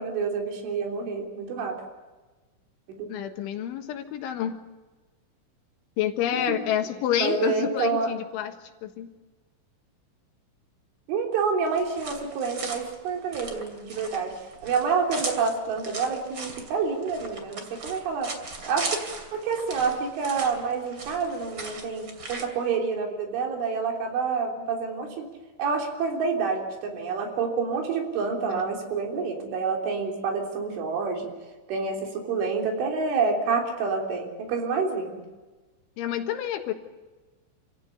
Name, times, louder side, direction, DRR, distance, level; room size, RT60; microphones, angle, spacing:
voice 1, 0.0-1.8 2.9-3.1 6.3-6.6 7.2-8.1 11.1-14.3 14.6-18.3 18.7-19.0 19.3-25.3 25.6-31.3 31.7-35.2, right 5 dB, 75° right, 2 dB, 5.8 m, -28 dB
voice 2, 3.1-4.6 6.0-8.5 8.8-9.1 28.5-28.6 36.0-36.7, left 10 dB, 75° left, 6 dB, 3.8 m, -28 dB
sound 1, 11.7-22.5, right 3 dB, 30° right, 2.5 m, -38 dB
27.5 x 16.5 x 8.2 m, 1.2 s
omnidirectional pair, 5.7 m